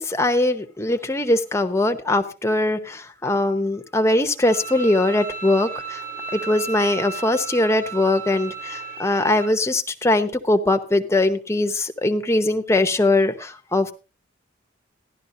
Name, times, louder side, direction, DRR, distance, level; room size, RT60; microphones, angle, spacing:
voice 1, 0.0-6.0 6.3-13.9, left 2 dB, 15° left, 6 dB, 0.9 m, -21 dB
Bowed string instrument, 4.4-9.5, right 5 dB, 90° right, 4.5 m, -34 dB
15.0 x 12.0 x 2.7 m, 0.30 s
head